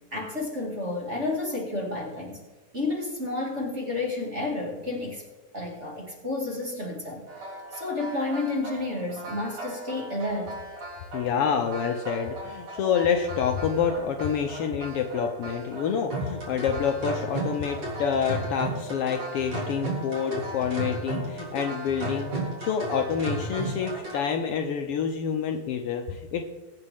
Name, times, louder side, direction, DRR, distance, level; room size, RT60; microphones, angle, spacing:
voice 1, 0.1-2.4 2.7-5.2 5.5-7.3 7.7-10.6, left 2 dB, 25° right, -1 dB, 1.9 m, -31 dB
sound 1, 7.3-24.2, right 2 dB, 45° right, 4.1 m, -35 dB
voice 2, 11.1-22.3 22.6-26.5, left 7 dB, 85° left, 4 dB, 1.3 m, -27 dB
22.0 x 8.0 x 3.5 m, 1.2 s
omnidirectional pair, 3.6 m